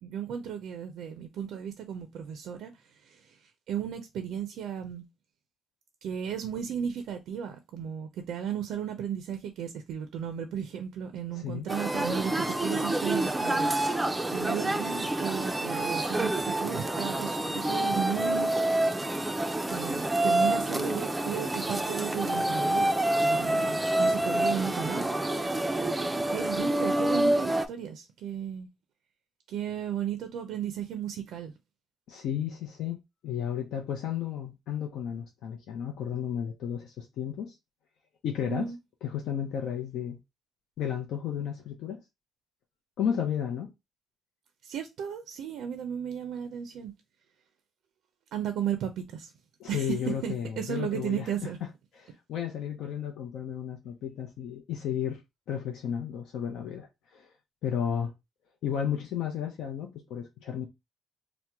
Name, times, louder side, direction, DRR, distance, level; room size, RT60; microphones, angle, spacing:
voice 1, 0.0-5.0 6.0-13.7 14.3-18.5 19.7-22.9 23.1-25.1 26.3-28.7 29.5-31.5 38.5-38.8 44.6-46.9 48.3-49.3 49.7-50.0 50.2-51.6, right 8 dB, 80° right, 0.4 m, -35 dB
voice 2, 11.3-11.7 32.1-37.5 38.2-38.7 39.0-40.2 40.8-42.0 43.0-43.7 49.6-51.5 51.9-55.2 55.5-56.9 57.1-57.3 57.6-58.1 58.6-60.7, left 9 dB, 80° left, 0.5 m, -33 dB
sound 1, 11.7-27.7, right 1 dB, 15° right, 0.4 m, -27 dB
2.9 x 2.1 x 3.4 m
cardioid pair, 90°, 0 cm